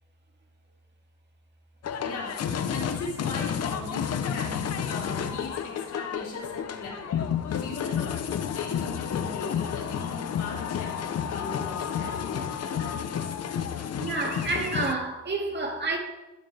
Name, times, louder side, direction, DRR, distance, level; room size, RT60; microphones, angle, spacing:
sound 1, 1.8-14.9, left 8 dB, 55° left, 0.9 m, -31 dB
voice 1, 2.0-13.2, left 3 dB, 75° left, 4.2 m, -39 dB
voice 2, 13.8-16.0, right 3 dB, 35° right, 2.4 m, -29 dB
13.5 x 9.1 x 3.5 m
cardioid pair, 90°, 30 cm